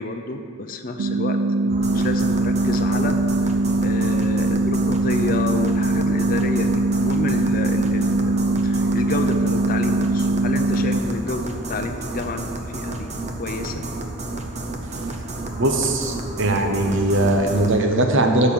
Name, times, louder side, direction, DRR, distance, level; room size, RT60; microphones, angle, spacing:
voice 1, 0.0-3.5 3.8-13.1 13.4-13.8, left 3 dB, 40° left, 5 dB, 0.6 m, -30 dB
sound 1, 1.0-11.0, right 2 dB, 85° right, 0.5 m, -21 dB
sound 2, 1.7-17.8, right 2 dB, 30° right, 0.7 m, -31 dB
voice 2, 15.6-18.5, right 1 dB, 60° right, 3 dB, 1.0 m, -20 dB
12.5 x 4.5 x 7.1 m, 2.4 s
head